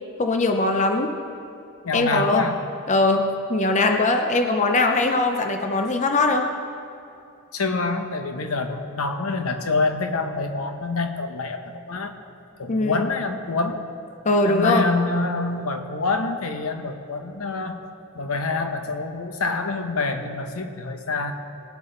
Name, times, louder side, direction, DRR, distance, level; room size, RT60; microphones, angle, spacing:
voice 1, 0.2-1.1 1.9-2.5 2.9-6.5 12.7-13.1 14.2-14.9, left 2 dB, 35° left, 5 dB, 0.6 m, -21 dB
voice 2, 1.8-2.6 7.5-12.1 12.6-13.8 14.4-17.8 18.1-21.3, left 3 dB, 75° left, 6 dB, 0.9 m, -26 dB
19.5 x 8.2 x 3.9 m, 2.7 s
head